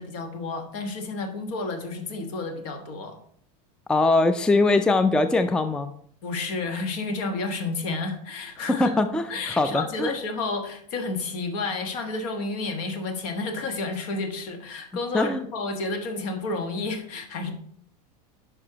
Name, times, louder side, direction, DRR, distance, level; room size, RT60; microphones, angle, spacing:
voice 1, 0.0-3.2 6.2-9.0 9.3-17.5, left 3 dB, 65° left, 5 dB, 1.4 m, -31 dB
voice 2, 3.9-5.9 8.7-10.1 15.1-15.4, left 2 dB, 5° left, 10 dB, 0.3 m, -22 dB
9.7 x 5.4 x 2.8 m, 0.63 s
supercardioid pair, 110°, 20 cm